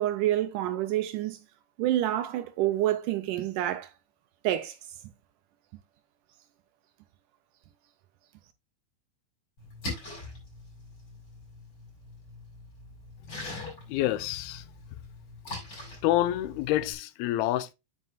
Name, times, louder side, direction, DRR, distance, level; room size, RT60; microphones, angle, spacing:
voice 1, 0.0-1.4 1.8-3.9 4.4-4.8, right 13 dB, 80° right, 1.9 m, -28 dB
Splash splatter, 9.6-16.9, left 2 dB, 30° left, 5.5 m, -43 dB
voice 2, 13.3-14.7 16.0-17.7, left 14 dB, 90° left, 2.5 m, -28 dB
9.4 x 7.4 x 2.3 m
omnidirectional pair, 4.4 m